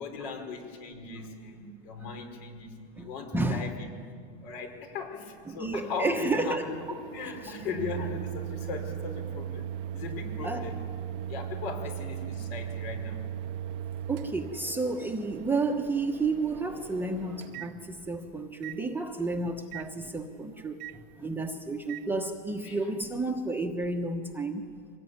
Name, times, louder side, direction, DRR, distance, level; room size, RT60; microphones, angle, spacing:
voice 1, 0.0-3.9 4.4-6.8 7.1-9.7 9.9-10.8 11.3-13.3 22.6-22.8, left 4 dB, 65° left, 4 dB, 5.5 m, -38 dB
voice 2, 3.3-3.8 5.5-6.6 7.4-7.5 10.4-10.7 14.1-20.8 21.2-24.7, right 3 dB, 5° right, 3 dB, 1.1 m, -31 dB
Microwave oven, 5.6-18.2 18.6-18.8 19.7-19.9 20.8-21.0 21.9-22.0, right 10 dB, 60° right, 0.8 m, -39 dB
24.5 x 19.5 x 9.6 m, 2.1 s
supercardioid pair, 150°, 33 cm